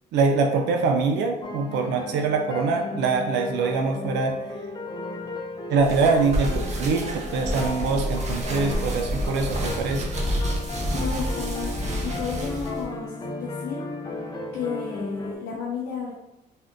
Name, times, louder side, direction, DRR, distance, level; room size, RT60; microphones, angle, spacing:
voice 1, 0.1-4.6 5.7-10.2, right 4 dB, 85° right, 4 dB, 0.4 m, -24 dB
sound 1, 1.4-15.4, left 2 dB, 25° left, 0.6 m, -35 dB
sound 2, 5.8-12.8, equal, 40° right, 0.8 m, -29 dB
voice 2, 10.9-13.8 14.2-14.3 14.5-16.1, left 6 dB, 70° left, -3 dB, 0.5 m, -33 dB
3.5 x 2.5 x 2.5 m, 0.92 s
cardioid pair, 85°, 18 cm